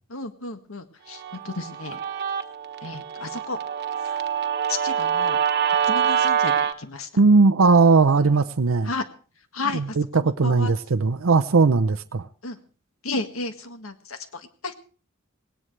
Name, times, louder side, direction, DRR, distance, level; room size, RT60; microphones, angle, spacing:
voice 1, 0.1-2.0 2.8-3.6 4.7-5.4 5.9-7.1 8.2-8.4 8.8-9.1 9.5-10.7 12.4-12.6 13.0-14.7, left 3 dB, 75° left, 7 dB, 1.9 m, -33 dB
Guitar, 1.2-6.7, right 8 dB, 50° right, 1.3 m, -25 dB
voice 2, 7.2-8.9 9.7-12.3, right 4 dB, 70° right, 11 dB, 0.6 m, -18 dB
19.5 x 18.5 x 3.3 m, 0.39 s
head